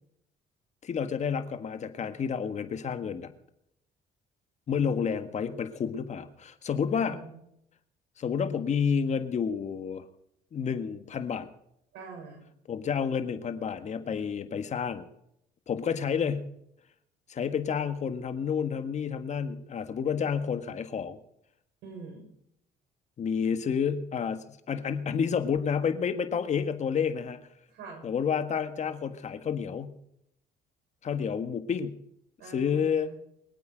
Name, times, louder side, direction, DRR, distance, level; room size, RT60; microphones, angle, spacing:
voice 1, 0.8-3.3 4.7-7.2 8.2-10.0 10.5-11.5 12.7-15.1 15.7-16.5 17.3-21.2 23.2-27.4 28.0-29.9 31.0-32.0 32.5-33.1, left 7 dB, 45° left, 9 dB, 1.6 m, -30 dB
voice 2, 6.9-7.4 11.9-12.4 21.8-22.3 27.7-28.0 32.4-33.2, right 4 dB, 80° right, 1 dB, 6.3 m, -45 dB
24.0 x 8.5 x 5.2 m, 0.75 s
cardioid pair, 110°, 17 cm